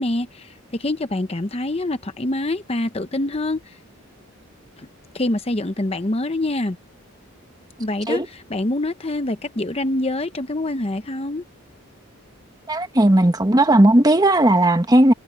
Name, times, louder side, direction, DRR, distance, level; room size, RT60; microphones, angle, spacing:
voice 1, 0.0-3.8 4.8-4.9 5.1-6.8 7.8-11.4, left 1 dB, 25° left, 0.8 m, -25 dB
voice 2, 12.7-15.1, right 1 dB, 15° right, 1.2 m, -15 dB
head